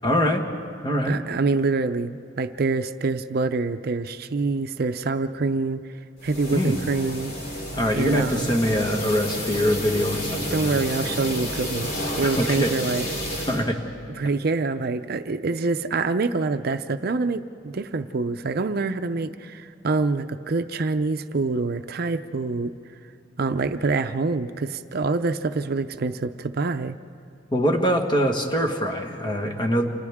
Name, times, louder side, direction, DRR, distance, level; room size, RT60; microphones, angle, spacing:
voice 1, 0.0-0.4 0.8-1.2 6.5-6.8 7.7-10.8 12.2-12.7 13.5-13.8 27.5-29.9, equal, 25° left, 3 dB, 1.5 m, -23 dB
voice 2, 1.1-5.8 6.2-7.3 7.9-8.5 10.5-11.9 12.2-13.1 13.4-13.5 14.2-22.7 23.4-27.0, right 3 dB, 55° right, 9 dB, 0.5 m, -26 dB
sound 1, 6.2-13.6, equal, 55° left, 3.7 m, -30 dB
29.5 x 27.5 x 3.6 m, 2.5 s
head